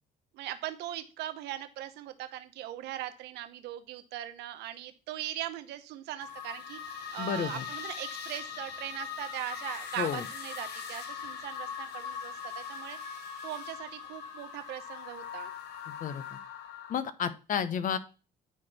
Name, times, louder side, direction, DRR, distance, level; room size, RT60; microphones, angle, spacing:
voice 1, 0.3-15.5, right 13 dB, 85° right, 9 dB, 1.0 m, -40 dB
sound 1, 6.2-17.0, left 7 dB, 75° left, 1.4 m, -41 dB
voice 2, 7.2-7.6 10.0-10.2 15.9-16.4 16.9-18.0, left 8 dB, 50° left, 12 dB, 1.0 m, -32 dB
9.5 x 4.5 x 4.3 m, 0.33 s
cardioid pair, 110°, 17 cm